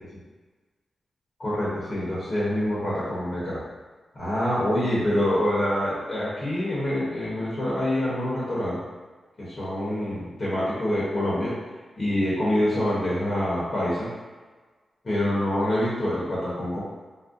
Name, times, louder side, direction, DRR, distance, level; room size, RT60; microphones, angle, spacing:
voice 1, 1.4-3.6 4.1-8.8 9.4-11.5 12.0-14.1 15.0-16.8, left 1 dB, 50° left, -8 dB, 1.0 m, -26 dB
2.6 x 2.1 x 3.7 m, 1.4 s
wide cardioid pair, 100°, 0 cm